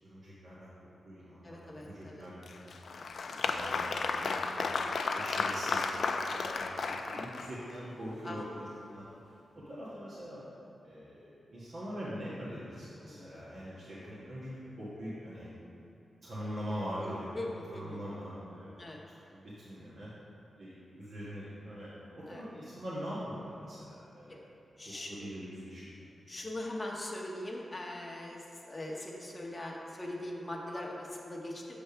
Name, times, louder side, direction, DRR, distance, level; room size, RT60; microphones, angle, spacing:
voice 1, 0.0-2.7 3.3-4.6 5.1-5.9 6.3-9.0 9.5-10.4 10.8-15.5 16.2-17.3 17.7-18.7 19.3-20.1 20.6-24.5 24.8-25.9, equal, 60° right, -10 dB, 1.3 m, -43 dB
voice 2, 1.4-2.3 8.2-8.4 13.0-13.3 17.0-18.1 18.8-19.0 22.3-22.4 24.3-24.4 24.8-25.3 26.3-31.8, left 1 dB, 25° left, -2 dB, 0.8 m, -41 dB
Applause, 2.4-7.8, left 4 dB, 70° left, 0.3 m, -33 dB
6.7 x 3.4 x 5.6 m, 2.9 s
cardioid pair, 80°, 0 cm